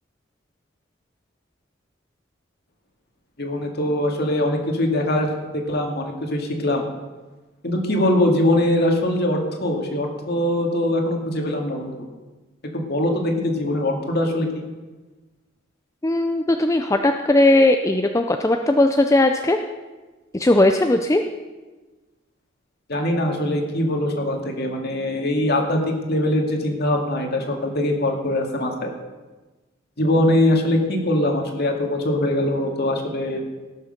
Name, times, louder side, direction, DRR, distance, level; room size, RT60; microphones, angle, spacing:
voice 1, 3.4-6.8 7.6-12.1 12.7-14.6 22.9-28.9 30.0-33.4, left 1 dB, 50° left, 2 dB, 2.1 m, -22 dB
voice 2, 16.0-19.6 20.3-21.2, left 1 dB, 15° left, 5 dB, 0.5 m, -18 dB
17.5 x 6.7 x 6.6 m, 1.2 s
head